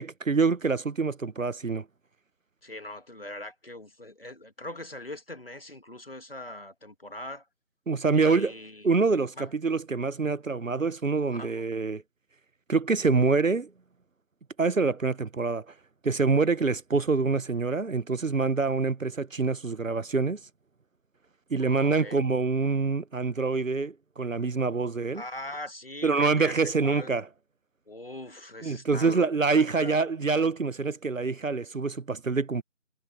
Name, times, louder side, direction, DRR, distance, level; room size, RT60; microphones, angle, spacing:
voice 1, 0.0-1.8 7.9-8.5 8.8-12.0 12.7-13.7 14.6-15.6 16.0-20.4 21.5-25.2 26.0-27.3 28.6-32.6, right 4 dB, 75° right, 1.0 m, -26 dB
voice 2, 2.6-7.4 8.1-8.9 9.4-9.5 11.3-11.6 21.6-22.2 25.1-27.1 27.9-29.3 29.7-30.0, left 1 dB, 45° left, 2.5 m, -41 dB
figure-of-eight pair, 175°, 40 cm